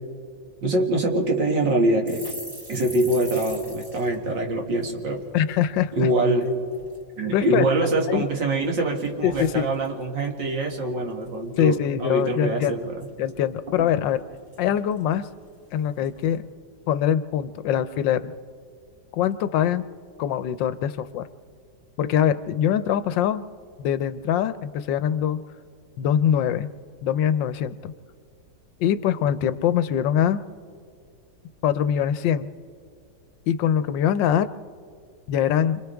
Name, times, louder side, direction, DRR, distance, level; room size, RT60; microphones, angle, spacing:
voice 1, 0.6-2.3 2.7-5.2 5.9-6.5 7.2-13.0, right 2 dB, 75° right, 0 dB, 2.8 m, -24 dB
sound 1, 2.1-5.6 5.9-6.1 6.4-7.0 7.5-8.3 8.6-10.3 10.6-10.8 11.1-11.7 12.0-12.1 12.4-13.1 13.4-13.5 13.7-15.5 16.0-16.4, equal, 25° right, 3.3 m, -43 dB
voice 2, 5.3-6.1 7.3-7.6 8.1-8.3 9.2-9.7 11.6-12.8 13.2-14.2 14.6-15.3 15.7-16.4 16.9-18.3 19.1-19.9 20.2-21.3 22.0-23.4 23.8-25.4 26.0-26.7 27.0-27.9 28.8-30.4 31.6-32.5 33.5-34.5 35.3-35.8, left 9 dB, 80° left, 13 dB, 1.3 m, -23 dB
29.5 x 26.0 x 3.5 m, 2.2 s
omnidirectional pair, 2.0 m